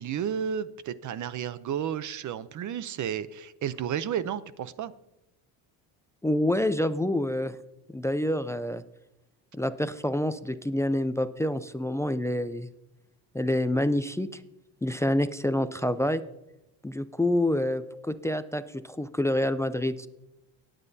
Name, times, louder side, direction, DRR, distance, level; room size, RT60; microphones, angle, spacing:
voice 1, 0.0-4.9, right 8 dB, 45° right, 16 dB, 0.7 m, -32 dB
voice 2, 6.2-7.6 7.9-8.8 9.5-12.7 13.3-14.4 14.8-16.2 16.8-20.1, left 1 dB, 5° left, 13 dB, 0.3 m, -27 dB
19.0 x 8.9 x 2.7 m, 0.89 s
cardioid pair, 110°, 43 cm